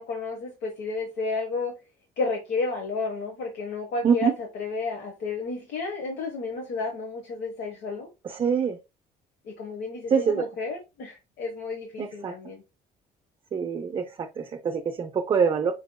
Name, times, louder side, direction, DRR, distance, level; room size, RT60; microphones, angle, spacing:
voice 1, 0.0-1.7 2.2-8.1 9.4-12.6, left 3 dB, 75° left, 1.1 m, -32 dB
voice 2, 8.2-8.8 10.1-10.4 12.0-12.3 13.5-15.7, right 6 dB, 30° right, 0.5 m, -25 dB
5.2 x 3.9 x 2.2 m
cardioid pair, 110°, 17 cm